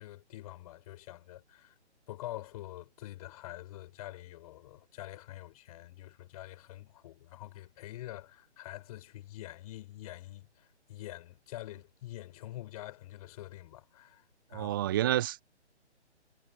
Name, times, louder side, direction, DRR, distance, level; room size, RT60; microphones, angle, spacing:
voice 1, 0.0-1.8 2.1-14.2 14.5-14.8, left 15 dB, 30° left, 6.9 m, -46 dB
voice 2, 14.5-15.4, right 13 dB, 20° right, 0.7 m, -29 dB
figure-of-eight pair, 140°, 35 cm